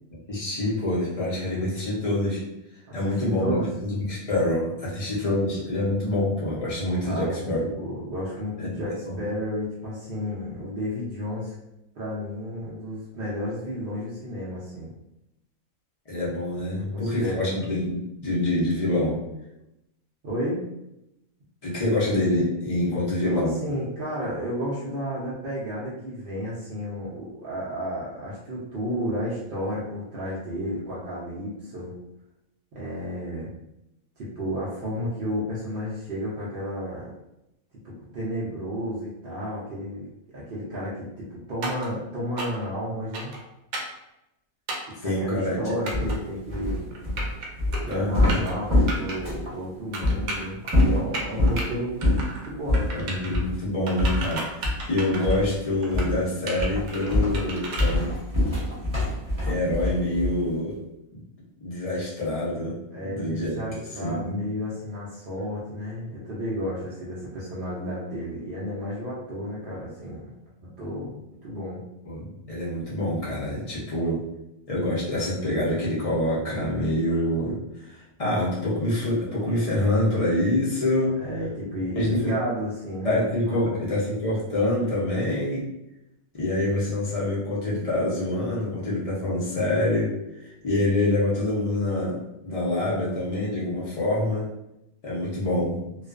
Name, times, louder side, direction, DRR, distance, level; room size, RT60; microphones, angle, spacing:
voice 1, 0.3-2.4 2.9-7.6 8.6-9.2 16.1-19.2 21.6-23.6 45.0-45.7 47.9-48.4 52.9-58.1 59.4-60.8 61.1-61.2 61.6-62.8 63.0-63.6 64.0-64.4 72.0-74.2 74.7-81.1 81.9-82.3 83.0-85.7 86.3-90.1 90.4-94.5 95.0-95.8, left 1 dB, 70° left, -6 dB, 0.3 m, -26 dB
voice 2, 2.9-3.7 7.0-11.5 11.9-14.9 16.8-17.6 20.2-20.6 23.3-31.9 32.7-33.5 34.2-37.1 37.8-40.1 40.3-43.3 45.0-47.0 47.8-52.0 52.3-53.1 62.9-70.3 70.6-71.2 71.4-71.8 81.1-83.9, equal, 60° right, -8 dB, 0.5 m, -32 dB
sound 1, 41.6-41.9 42.4-42.7 43.1-43.4 43.7-44.0 44.7-44.9 45.9-46.2 46.9-47.5 47.7-48.0 48.3-48.5 48.9-49.2 49.9-50.8 51.1-51.6 52.0-52.5 52.7-53.4 53.9-55.4 55.8-56.1 56.5-57.9, right 2 dB, 75° right, 1.0 m, -33 dB
sound 2, 45.9-49.5 50.0-50.2 50.6-51.6 52.0-52.3 52.7-52.9 53.3-53.5 54.0-54.9 55.2-55.6 55.9-56.2 56.6-60.5, left 1 dB, 25° right, 0.8 m, -24 dB
2.3 x 2.3 x 2.3 m, 0.87 s
omnidirectional pair, 1.5 m